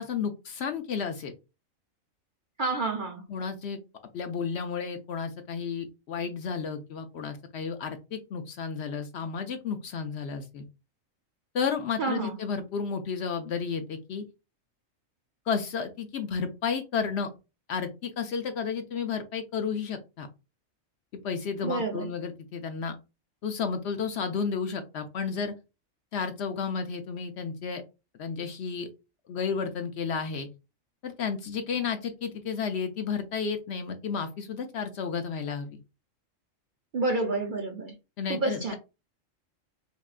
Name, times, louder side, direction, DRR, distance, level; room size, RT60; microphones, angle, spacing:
voice 1, 0.0-1.3 3.3-3.8 4.1-10.7 11.5-14.2 15.5-17.3 17.7-20.3 21.2-23.0 23.4-25.5 26.1-27.8 28.2-28.9 29.3-30.5 31.0-35.8 38.2-38.7, left 6 dB, 65° left, 0.8 m, -32 dB
voice 2, 2.6-3.2 12.0-12.4 21.6-22.1 36.9-37.9 38.3-38.7, right 3 dB, 50° right, 0.6 m, -29 dB
5.3 x 2.3 x 2.4 m
omnidirectional pair, 1.4 m